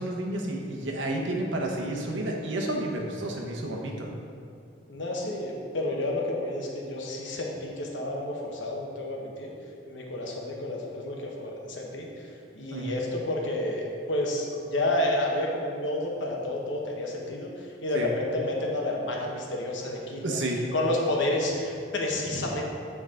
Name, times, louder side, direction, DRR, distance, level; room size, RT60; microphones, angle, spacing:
voice 1, 0.0-4.1 12.7-13.0 17.9-18.1 20.2-20.6, right 1 dB, 80° right, 0 dB, 1.0 m, -31 dB
voice 2, 4.9-9.5 9.9-12.1 12.5-20.4 20.7-22.7, left 1 dB, 75° left, -1 dB, 1.1 m, -30 dB
7.9 x 4.8 x 3.7 m, 2.4 s
head